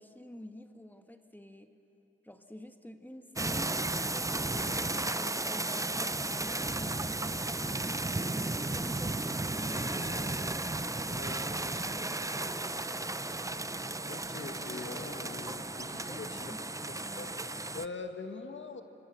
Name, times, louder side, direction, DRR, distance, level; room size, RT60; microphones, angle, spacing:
voice 1, 0.0-1.7 2.2-3.7 4.1-4.8 5.1-10.1 11.0-11.2 11.6-12.8 15.9-16.6, left 1 dB, 10° left, 7 dB, 1.5 m, -49 dB
sound 1, 3.4-17.9, right 2 dB, 15° right, 0.5 m, -34 dB
sound 2, 4.5-16.5, left 1 dB, 25° left, 2.4 m, -52 dB
voice 2, 11.1-11.5 14.1-16.5 16.9-18.8, left 4 dB, 70° left, 6 dB, 1.8 m, -44 dB
27.5 x 26.0 x 7.8 m, 3.0 s
wide cardioid pair, 115°, 20 cm